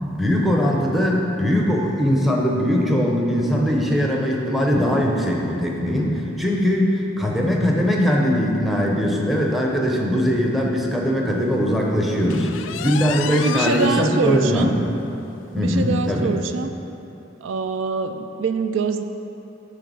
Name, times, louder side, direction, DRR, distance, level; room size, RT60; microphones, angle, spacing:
voice 1, 0.0-14.7 15.5-16.3, equal, ahead, -2 dB, 0.8 m, -21 dB
sound 1, 12.3-14.0 14.5-14.6 15.0-15.1 15.5-15.6 16.5-16.6, left 8 dB, 75° left, 0.3 m, -30 dB
voice 2, 13.4-14.7 15.6-16.7 17.4-19.0, right 4 dB, 75° right, 8 dB, 0.4 m, -24 dB
9.4 x 3.4 x 6.1 m, 3.0 s
head